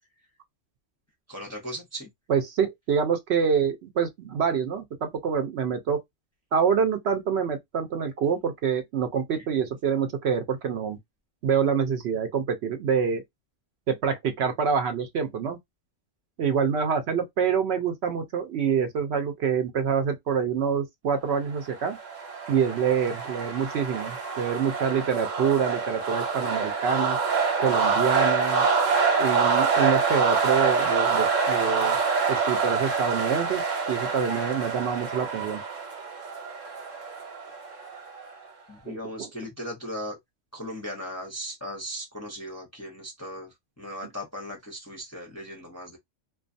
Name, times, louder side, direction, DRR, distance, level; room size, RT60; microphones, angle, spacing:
voice 1, 1.3-2.1 38.7-40.2 40.5-46.0, equal, 15° left, 0.6 m, -37 dB
voice 2, 2.3-6.0 6.5-11.0 11.4-13.2 13.9-15.6 16.4-22.0 22.5-27.2 27.6-28.7 29.2-32.0 32.3-33.6 33.9-35.6 38.9-39.3, right 7 dB, 65° right, 0.8 m, -26 dB
sound 1, 21.7-38.3, right 5 dB, 90° right, 1.2 m, -26 dB
2.3 x 2.3 x 2.5 m
omnidirectional pair, 1.3 m